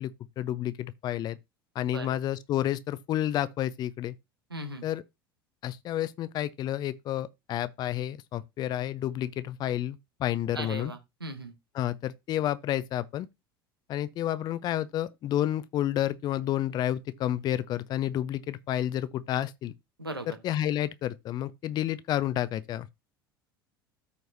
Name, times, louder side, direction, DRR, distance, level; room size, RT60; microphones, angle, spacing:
voice 1, 0.0-1.4 1.7-4.1 4.8-5.0 5.6-10.9 11.7-13.3 13.9-19.7 20.4-22.9, left 12 dB, 35° left, 0.6 m, -30 dB
voice 2, 4.5-4.9 10.5-11.5 20.0-20.3, right 1 dB, 85° right, 1.2 m, -38 dB
14.0 x 4.6 x 2.7 m
figure-of-eight pair, 70°, 12 cm